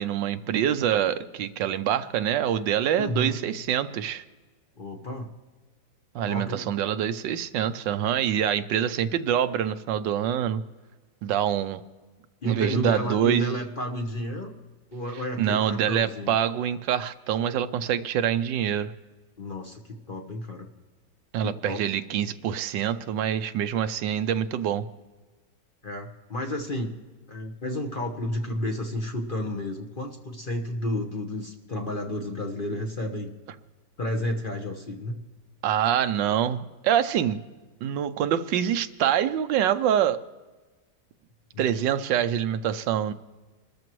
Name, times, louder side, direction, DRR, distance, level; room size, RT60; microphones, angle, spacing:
voice 1, 0.0-4.2 6.1-10.6 11.2-11.8 12.4-13.6 15.4-18.9 21.3-24.8 35.6-37.4 37.8-40.2 41.6-43.1, right 9 dB, 80° right, 11 dB, 1.3 m, -25 dB
voice 2, 2.9-3.4 4.8-5.3 6.3-6.6 12.4-14.5 14.9-16.4 19.4-20.7 21.4-21.8 25.8-26.9 27.3-33.3 34.0-35.1 41.5-41.6, left 1 dB, 35° left, 3 dB, 1.1 m, -31 dB
26.5 x 13.5 x 3.1 m, 1.3 s
omnidirectional pair, 2.0 m